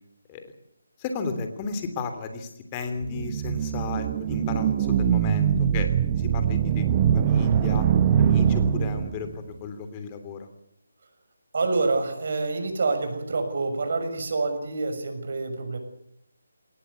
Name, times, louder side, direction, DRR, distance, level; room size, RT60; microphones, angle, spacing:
voice 1, 1.0-5.9 6.1-6.9 7.1-7.9 8.2-10.5, left 4 dB, 20° left, 8 dB, 3.2 m, -34 dB
sound 1, 3.0-9.3, right 8 dB, 25° right, 1.1 m, -23 dB
voice 2, 11.5-15.8, right 3 dB, 55° right, 6 dB, 6.5 m, -27 dB
21.0 x 19.0 x 8.3 m, 0.73 s
figure-of-eight pair, 160°, 0 cm